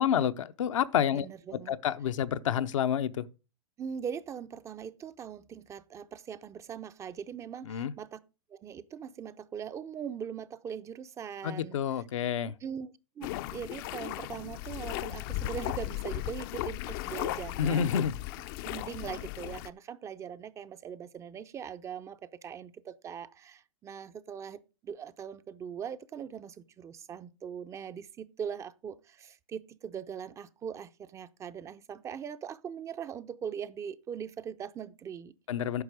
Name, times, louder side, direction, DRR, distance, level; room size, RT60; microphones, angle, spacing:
voice 1, 0.0-1.3 1.7-3.2 7.7-7.9 11.4-12.5 17.6-18.1 35.5-35.8, left 9 dB, 75° left, 0.7 m, -28 dB
voice 2, 1.1-1.7 3.8-8.2 8.5-11.8 12.6-17.9 18.6-35.3, right 7 dB, 20° right, 0.4 m, -41 dB
sound 1, 13.2-19.7, left 15 dB, 45° left, 0.5 m, -36 dB
9.6 x 5.9 x 4.9 m
hypercardioid pair, 130°, 17 cm